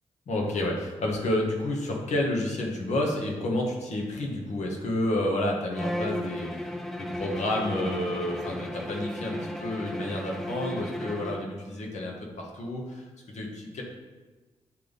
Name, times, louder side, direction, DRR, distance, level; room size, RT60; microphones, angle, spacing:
voice 1, 0.3-6.7 7.0-13.8, left 1 dB, 80° left, 0 dB, 1.3 m, -30 dB
Bowed string instrument, 5.7-11.5, left 1 dB, 5° left, 0.5 m, -35 dB
9.0 x 3.5 x 4.0 m, 1.2 s
cardioid pair, 80°, 12 cm